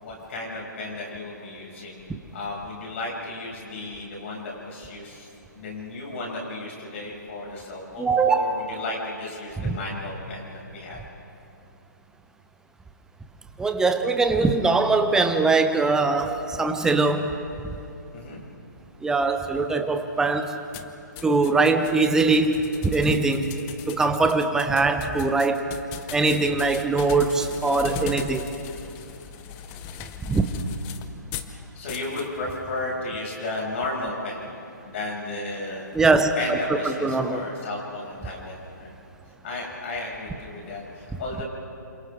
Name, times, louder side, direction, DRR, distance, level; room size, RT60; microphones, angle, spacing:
voice 1, 0.0-2.0 2.3-5.3 5.5-11.0 18.1-18.4 31.4-34.5 34.8-35.9 36.4-38.9 39.4-41.4, left 2 dB, 40° left, -2 dB, 6.7 m, -34 dB
voice 2, 8.0-8.5 9.6-9.8 13.6-17.4 19.0-20.6 21.2-23.5 23.9-25.7 26.1-28.4 30.2-30.4 35.9-36.6 36.8-37.5, right 3 dB, 5° right, 7 dB, 0.9 m, -22 dB
sound 1, 20.7-31.5 31.9-32.3, left 9 dB, 25° left, 0.8 m, -39 dB
28.0 x 26.5 x 3.7 m, 2.8 s
figure-of-eight pair, 135°, 10 cm